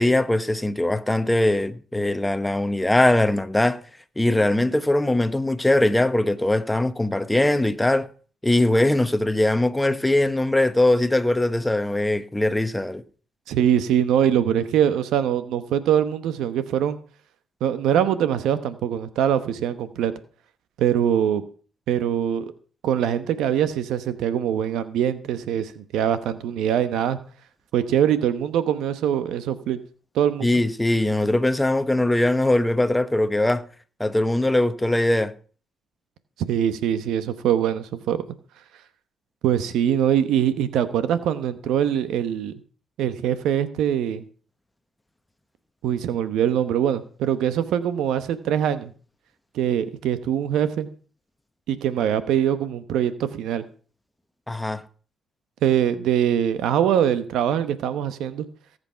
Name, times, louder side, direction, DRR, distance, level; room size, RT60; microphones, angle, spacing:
voice 1, 0.0-3.8 4.2-8.1 8.4-13.0 30.4-33.7 34.0-35.3 54.5-54.8, left 1 dB, 10° left, 1.1 m, -21 dB
voice 2, 13.5-17.0 17.6-20.1 20.8-21.4 21.9-22.5 22.8-27.2 27.7-29.8 30.1-30.5 36.5-38.2 39.4-42.5 43.0-44.2 45.8-48.9 49.5-50.9 51.7-53.6 55.6-58.5, right 9 dB, 85° right, 1.0 m, -23 dB
17.5 x 8.1 x 5.7 m
cardioid pair, 90°, 0 cm